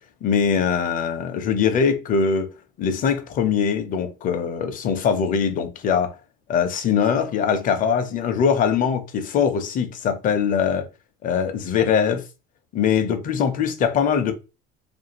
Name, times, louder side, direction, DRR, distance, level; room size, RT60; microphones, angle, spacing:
voice 1, 0.2-2.5 2.8-6.1 6.5-10.9 11.2-12.2 12.7-14.3, left 7 dB, 40° left, 0.6 m, -22 dB
2.5 x 2.3 x 2.9 m
cardioid pair, 135°, 21 cm